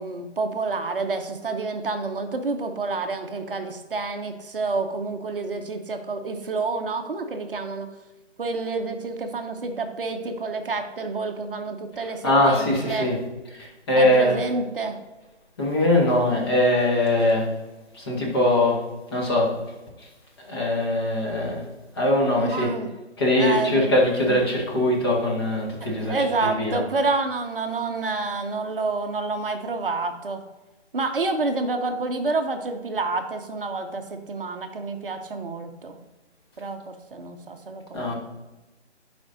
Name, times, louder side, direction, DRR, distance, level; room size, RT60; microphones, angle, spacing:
voice 1, 0.0-7.9 8.4-13.1 14.0-15.0 22.4-22.9 23.4-23.9 24.3-24.4 26.0-30.4 30.9-36.0 36.6-38.1, right 3 dB, 50° right, 6 dB, 0.7 m, -28 dB
voice 2, 11.9-13.2 13.5-14.4 15.6-17.5 17.9-18.8 19.1-19.6 20.0-20.1 20.4-21.6 21.9-22.7 23.2-26.8 37.9-38.1, left 1 dB, 20° left, -3 dB, 1.1 m, -22 dB
11.5 x 5.0 x 2.6 m, 1.1 s
hypercardioid pair, 165°, 35 cm